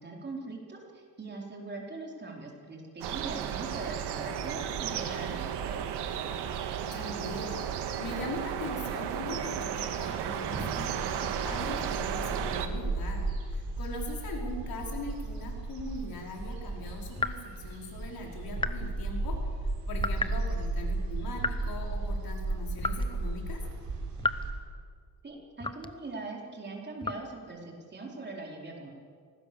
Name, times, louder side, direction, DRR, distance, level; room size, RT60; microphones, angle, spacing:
voice 1, 0.0-5.9 25.2-28.9, right 3 dB, 25° right, -1 dB, 4.2 m, -41 dB
sound 1, 3.0-12.7, right 9 dB, 90° right, 1.8 m, -34 dB
voice 2, 6.8-19.4 19.9-23.6, left 2 dB, 60° left, 0 dB, 5.0 m, -41 dB
sound 2, 9.7-24.5, right 2 dB, 60° right, 5.3 m, -35 dB
sound 3, 17.2-17.4 18.6-18.9 20.0-20.4 21.4-21.6 22.8-23.1 24.2-24.5 25.6-26.0 27.0-27.3, left 3 dB, 15° left, 0.8 m, -32 dB
24.5 x 18.5 x 7.0 m, 2.1 s
cardioid pair, 130°, 39 cm